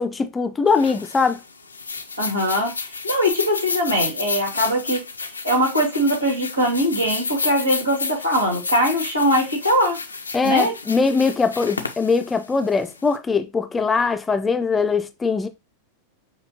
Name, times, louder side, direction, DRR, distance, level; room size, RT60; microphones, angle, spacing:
voice 1, 0.0-1.4 10.3-15.5, left 4 dB, 15° left, 0.4 m, -21 dB
sound 1, 0.7-13.1, left 4 dB, 80° left, 0.5 m, -31 dB
voice 2, 2.2-2.7 3.0-5.0 5.4-10.0 10.4-10.8, equal, 85° right, 2.0 m, -21 dB
6.1 x 2.6 x 2.9 m
figure-of-eight pair, 90°, 0 cm